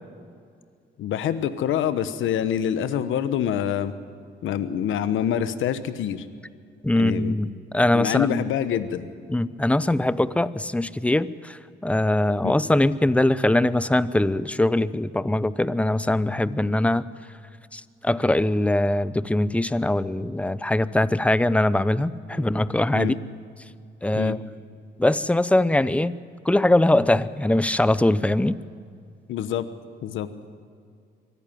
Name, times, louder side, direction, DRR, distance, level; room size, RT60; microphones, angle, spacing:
voice 1, 1.0-3.9 4.4-6.2 6.9-7.4 7.9-9.1 12.4-12.5 22.3-22.4 22.9-23.2 24.1-24.4 29.3-29.7 30.0-30.3, left 9 dB, 80° left, 13 dB, 1.1 m, -26 dB
voice 2, 6.8-8.5 9.3-17.0 17.7-23.2 24.0-24.4 25.0-26.1 26.4-28.5, left 1 dB, 5° left, 17 dB, 0.7 m, -22 dB
24.0 x 14.0 x 9.2 m, 2.3 s
cardioid pair, 90°, 20 cm